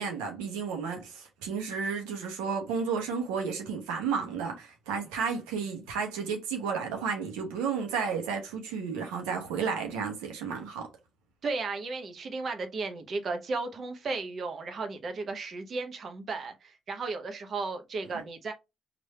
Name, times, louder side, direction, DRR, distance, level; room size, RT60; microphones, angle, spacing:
voice 1, 0.0-10.9, right 6 dB, 90° right, 0.9 m, -32 dB
voice 2, 11.4-18.5, right 3 dB, 55° right, 0.9 m, -34 dB
3.2 x 2.5 x 4.2 m
supercardioid pair, 55°, 0 cm